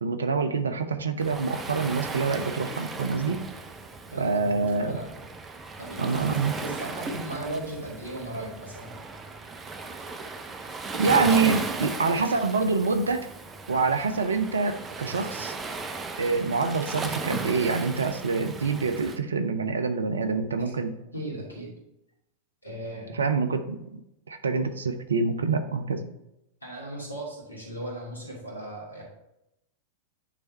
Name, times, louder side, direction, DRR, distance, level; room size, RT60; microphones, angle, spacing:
voice 1, 0.0-3.4 4.2-5.0 6.0-6.5 10.9-13.3 13.7-15.5 16.2-20.9 23.1-23.8 24.3-26.0, right 4 dB, 70° right, 9 dB, 0.6 m, -26 dB
Waves surf, 1.2-19.2, right 3 dB, 20° right, 0.6 m, -36 dB
voice 2, 4.1-5.2 5.8-6.2 6.6-8.9 11.1-11.4 20.6-20.7 21.1-21.7 22.6-23.2 26.6-29.0, right 1 dB, 80° left, -3 dB, 2.4 m, -37 dB
9.5 x 3.4 x 4.1 m, 0.86 s
figure-of-eight pair, 90°, 0 cm